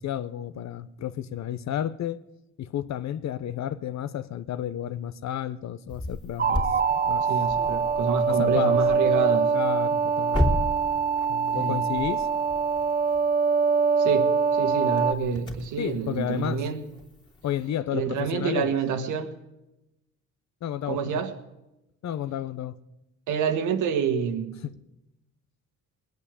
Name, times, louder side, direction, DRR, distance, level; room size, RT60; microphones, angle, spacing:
voice 1, 0.0-2.2 2.6-7.3 8.3-8.8 9.5-10.5 11.3-12.3 15.8-16.6 17.4-18.7 20.6-21.2 22.0-22.8 24.6-24.7, left 11 dB, 65° left, 0.9 m, -32 dB
sound 1, 5.9-17.7, left 1 dB, 15° left, 2.7 m, -35 dB
sound 2, 6.4-15.1, right 5 dB, 30° right, 0.8 m, -24 dB
voice 2, 7.3-9.5 11.5-11.8 14.0-16.8 17.9-19.3 20.9-21.3 23.3-24.6, right 6 dB, 85° right, 1.7 m, -28 dB
20.0 x 8.4 x 8.3 m
cardioid pair, 90°, 30 cm